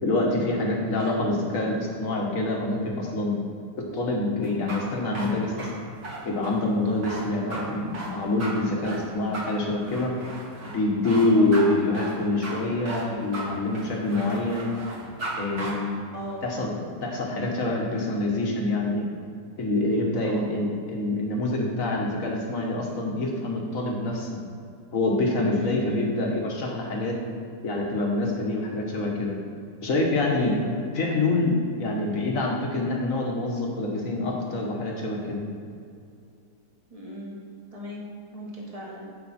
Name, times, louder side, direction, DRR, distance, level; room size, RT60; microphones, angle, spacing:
voice 1, 0.0-3.4 3.9-5.7 6.2-10.1 10.7-14.7 15.4-16.0 16.4-16.7 17.0-19.0 19.6-24.4 24.9-27.2 27.6-29.4 29.8-30.5 30.9-35.4, left 2 dB, 50° left, -1 dB, 1.8 m, -26 dB
sound 1, 4.4-15.3 15.6-15.7, right 2 dB, 60° right, 2.3 m, -36 dB
voice 2, 16.1-16.5 20.2-20.5 25.5-26.1 30.4-30.7 36.9-37.4 37.7-38.0 38.3-39.1, equal, 20° right, -4 dB, 1.9 m, -36 dB
15.5 x 5.5 x 4.3 m, 2.3 s
omnidirectional pair, 1.8 m